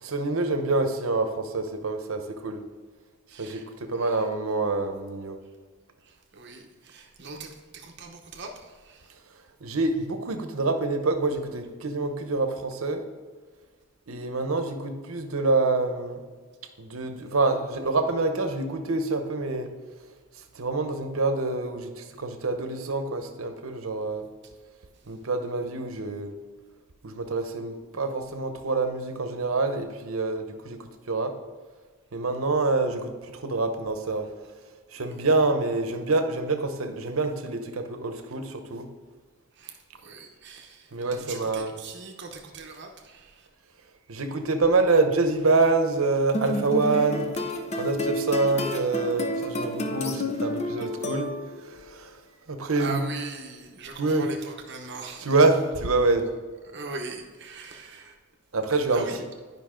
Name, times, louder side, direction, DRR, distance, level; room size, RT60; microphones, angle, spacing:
voice 1, 0.0-2.6 3.4-5.4 9.6-13.0 14.1-16.2 16.8-19.7 20.5-24.3 25.1-26.3 27.0-30.8 31.1-31.3 32.1-34.2 34.9-38.9 40.9-41.7 44.1-47.3 47.8-51.3 51.6-52.1 52.5-53.0 54.0-54.3 55.2-56.2 58.5-59.1, right 3 dB, 85° right, 7 dB, 0.9 m, -26 dB
voice 2, 3.3-3.6 3.9-4.3 6.0-9.2 39.5-43.5 52.7-55.2 56.7-58.1 58.7-59.2, right 3 dB, 55° right, 2 dB, 0.9 m, -40 dB
sound 1, 46.3-51.7, left 1 dB, 30° left, 0.6 m, -30 dB
10.5 x 5.4 x 3.7 m, 1.4 s
head